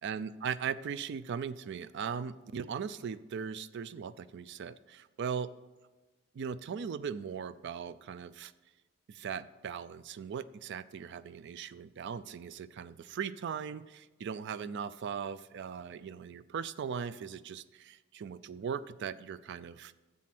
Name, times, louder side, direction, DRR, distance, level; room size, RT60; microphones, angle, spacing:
voice 1, 0.0-5.5 6.3-8.5 9.1-19.9, right 7 dB, 55° right, 16 dB, 0.3 m, -39 dB
7.5 x 7.4 x 6.0 m, 1.2 s
head